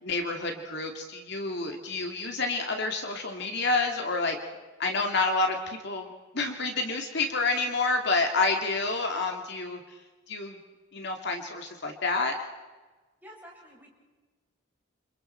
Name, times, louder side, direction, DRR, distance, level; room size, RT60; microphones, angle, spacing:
voice 1, 0.0-4.4 4.8-10.0 10.3-10.6 10.9-12.3, left 3 dB, 55° left, 3 dB, 2.4 m, -29 dB
voice 2, 13.2-13.9, equal, 10° right, -4 dB, 7.8 m, -49 dB
29.0 x 28.0 x 4.5 m, 1.3 s
head